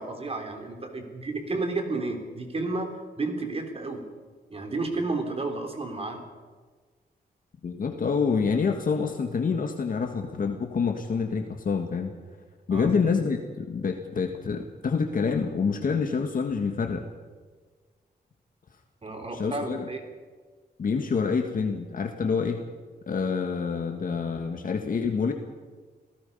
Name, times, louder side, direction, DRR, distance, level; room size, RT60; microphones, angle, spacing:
voice 1, 0.0-2.9 3.2-4.0 4.5-6.2 12.7-12.9 19.0-20.0, right 3 dB, 35° right, 4 dB, 3.8 m, -31 dB
voice 2, 7.6-12.1 12.7-17.0 19.3-19.9 20.8-22.6 23.1-25.3, left 5 dB, 55° left, 4 dB, 1.7 m, -27 dB
28.0 x 17.0 x 5.5 m, 1.4 s
wide cardioid pair, 115°, 17 cm